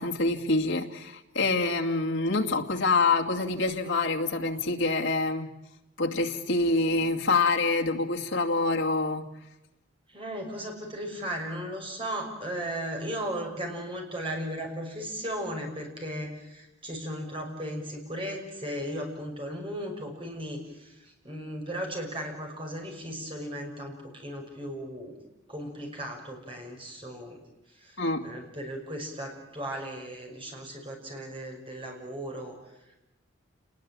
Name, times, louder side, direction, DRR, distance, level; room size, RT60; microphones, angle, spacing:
voice 1, 0.0-5.5 6.0-9.2 28.0-28.3, left 3 dB, 65° left, 0 dB, 2.5 m, -26 dB
voice 2, 10.1-25.2 25.5-27.4 27.7-33.0, equal, 25° right, 2 dB, 6.3 m, -36 dB
29.0 x 20.5 x 8.8 m, 0.93 s
head